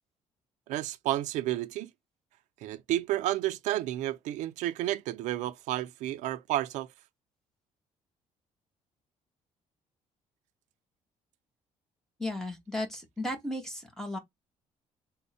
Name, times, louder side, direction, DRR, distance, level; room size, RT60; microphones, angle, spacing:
voice 1, 0.7-1.9 2.6-6.9, right 14 dB, 85° right, 0.4 m, -31 dB
voice 2, 12.2-14.2, left 1 dB, 5° left, 0.9 m, -35 dB
3.5 x 2.1 x 4.0 m
cardioid pair, 170°, 12 cm